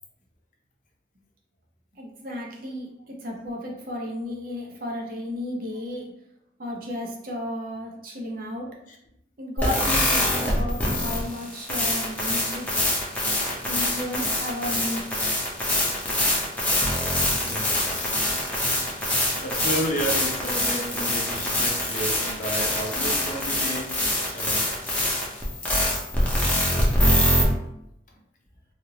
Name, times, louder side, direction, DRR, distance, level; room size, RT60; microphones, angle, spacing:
voice 1, 1.9-6.1 6.6-8.7 9.4-12.7 13.7-15.3, left 1 dB, 50° right, 0 dB, 0.7 m, -33 dB
sound 1, 9.6-27.4, left 1 dB, 10° left, 0.7 m, -24 dB
voice 2, 17.4-18.2 18.6-24.0 24.3-24.8, equal, 45° left, -1 dB, 0.6 m, -32 dB
3.3 x 2.5 x 2.9 m, 0.80 s
head